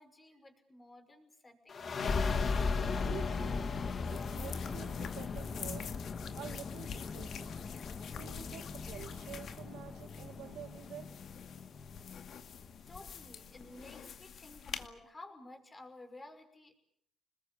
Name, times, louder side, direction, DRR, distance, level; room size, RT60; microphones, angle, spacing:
voice 1, 0.0-1.9 12.9-16.8, left 2 dB, 25° left, 5.8 m, -53 dB
sound 1, 1.7-13.0, left 4 dB, 45° left, 2.2 m, -37 dB
voice 2, 3.1-3.7 4.1-5.9 6.4-7.6 8.1-11.1, right 10 dB, 85° right, 1.8 m, -49 dB
sound 2, 3.4-14.9, left 7 dB, 65° left, 2.2 m, -47 dB
27.5 x 20.5 x 8.7 m
cardioid pair, 90°, 0 cm